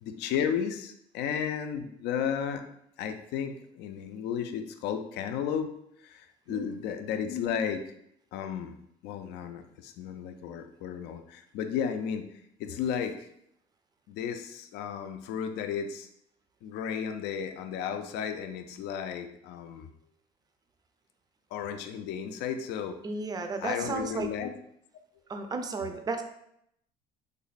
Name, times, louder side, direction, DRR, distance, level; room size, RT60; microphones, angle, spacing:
voice 1, 0.0-2.6 3.0-5.7 6.0-7.8 8.3-8.8 9.0-12.3 12.6-13.3 14.1-16.1 16.6-19.9 21.5-23.0 23.6-24.5, left 8 dB, 85° left, 8 dB, 0.4 m, -33 dB
voice 2, 6.5-6.8 23.0-24.3 25.3-26.2, right 3 dB, 25° right, 7 dB, 0.4 m, -33 dB
3.2 x 2.1 x 4.0 m, 0.74 s
cardioid pair, 110°, 17 cm